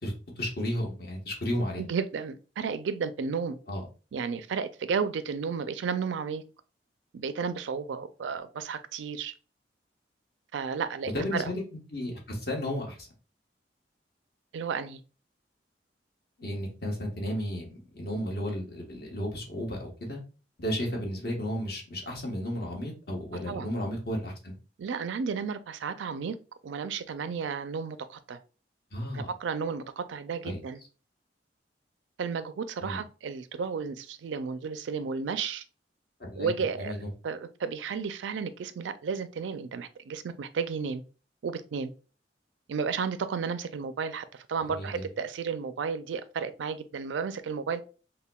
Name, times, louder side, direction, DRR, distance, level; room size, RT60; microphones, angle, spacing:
voice 1, 0.0-1.8 3.7-3.9 11.1-11.6 11.9-13.1 16.4-20.2 20.6-24.6 28.9-29.3 30.4-30.6 32.8-33.0 36.2-36.5 36.7-37.1 44.7-45.1, equal, 55° left, 1.2 m, -33 dB
voice 2, 1.8-3.6 4.1-6.4 7.1-9.3 10.5-11.5 14.5-15.0 23.5-23.7 24.8-26.4 26.6-28.4 29.1-30.8 32.2-35.6 36.4-37.0 37.2-41.0 41.4-41.9 42.7-47.8, right 5 dB, 90° right, 0.4 m, -33 dB
5.4 x 2.2 x 2.2 m
head